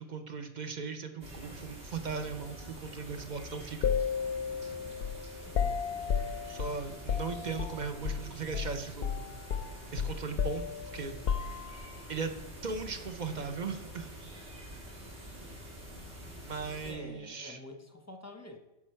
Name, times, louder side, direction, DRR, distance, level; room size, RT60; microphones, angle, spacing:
voice 1, 0.0-3.9 6.5-9.3 9.9-10.7 10.9-11.2 12.1-12.3 12.6-14.1 16.4-17.6, right 5 dB, 45° right, 7 dB, 0.8 m, -38 dB
sound 1, 1.2-16.9, equal, 65° right, 2.2 m, -47 dB
sound 2, 3.8-8.3 8.5-8.7 9.0-12.0, left 7 dB, 60° left, 0.7 m, -33 dB
voice 2, 5.4-5.8 16.8-18.6, left 1 dB, 15° left, 4 dB, 0.8 m, -47 dB
sound 3, 6.6-13.1, left 1 dB, 85° right, 1.9 m, -57 dB
10.0 x 6.1 x 4.4 m, 1.0 s
omnidirectional pair, 1.2 m